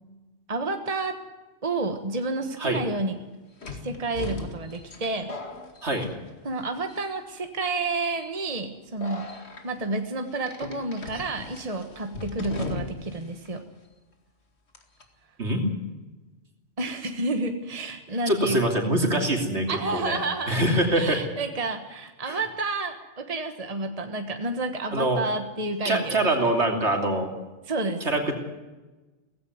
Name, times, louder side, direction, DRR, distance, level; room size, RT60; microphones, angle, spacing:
voice 1, 0.5-1.2 1.6-3.2 3.8-5.3 6.4-9.3 9.6-13.6 16.8-18.6 19.7-20.6 20.9-26.4 27.7-28.1, right 2 dB, 30° right, 6 dB, 1.4 m, -30 dB
sound 1, 2.3-2.4 3.6-6.6 6.9-7.4 8.0-8.3 9.0-9.6 10.4-13.2 13.4-13.5 14.7-15.0, left 3 dB, 60° left, 2.4 m, -38 dB
voice 2, 18.3-20.2 20.5-21.2 22.3-22.4 24.9-25.2 25.8-27.3 28.0-28.4, right 1 dB, 60° right, 3 dB, 3.4 m, -24 dB
17.5 x 15.5 x 9.5 m, 1.2 s
omnidirectional pair, 1.3 m